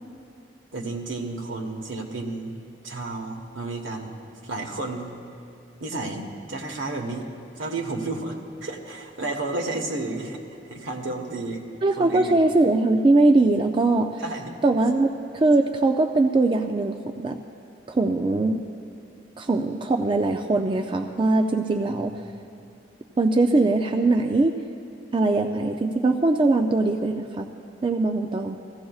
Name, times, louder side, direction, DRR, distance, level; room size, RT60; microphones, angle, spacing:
voice 1, 0.7-5.1 5.8-10.4 10.7-11.6 12.0-12.4 14.2-14.6 21.9-22.1, right 2 dB, 90° right, 3 dB, 1.2 m, -32 dB
voice 2, 11.8-14.2 14.6-17.4 17.9-18.6 19.4-22.2 23.2-24.5 25.1-27.5 27.8-28.6, right 2 dB, 25° right, 4 dB, 0.3 m, -21 dB
16.0 x 15.5 x 2.3 m, 2.7 s
head